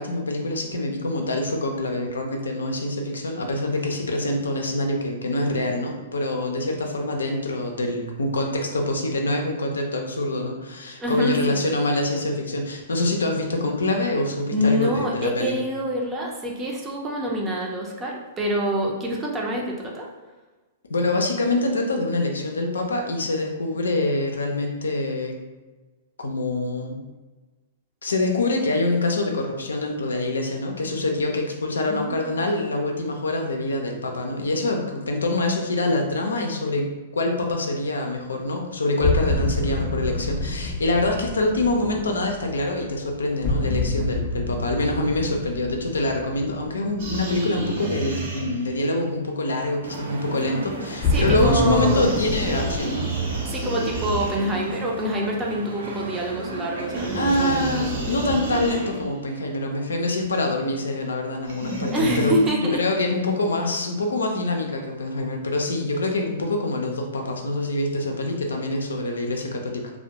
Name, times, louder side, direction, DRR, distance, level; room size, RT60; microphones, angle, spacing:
voice 1, 0.0-15.6 20.9-25.4 26.2-27.0 28.0-53.1 57.1-62.3 62.7-69.9, left 2 dB, 85° left, 2 dB, 0.4 m, -25 dB
voice 2, 11.0-11.6 14.5-20.1 31.9-32.4 51.1-52.2 53.5-57.8 61.9-62.8, equal, 20° right, -1 dB, 0.5 m, -26 dB
sound 1, 39.0-48.0 51.0-52.8, left 3 dB, 30° left, 0.5 m, -28 dB
sound 2, 47.0-48.9 51.1-54.8 56.9-59.2 61.5-62.5, right 2 dB, 55° right, 0.8 m, -30 dB
sound 3, 49.8-59.0, right 2 dB, 80° right, 0.4 m, -35 dB
2.2 x 2.1 x 2.8 m, 1.2 s
hypercardioid pair, 120°, 0 cm